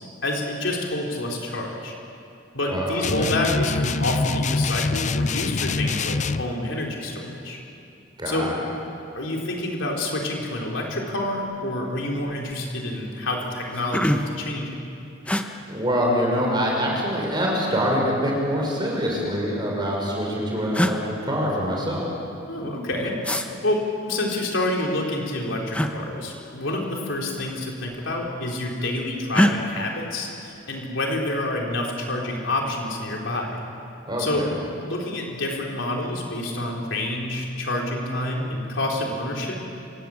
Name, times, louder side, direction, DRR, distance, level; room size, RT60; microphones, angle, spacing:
voice 1, 0.2-1.9 2.5-7.6 8.3-8.5 9.1-14.7 22.5-33.6 34.2-34.5 34.8-39.5, left 1 dB, 70° left, -1 dB, 4.2 m, -28 dB
voice 2, 2.7-3.3 8.2-8.5 15.7-22.1 34.1-34.5, equal, 20° right, -2 dB, 6.1 m, -25 dB
sound 1, 3.0-6.5, left 4 dB, 35° left, 0.5 m, -25 dB
sound 2, 11.5-11.8 12.2-12.6 13.2-13.3 13.6-14.5 15.3-15.5 16.7-17.4 18.5-19.4 20.3-20.4 20.7-21.0 23.2-23.5 25.7-25.9 27.3-27.5 27.8-28.4 29.3-29.6, equal, 5° left, 1.1 m, -24 dB
26.5 x 18.5 x 8.8 m, 2.6 s
head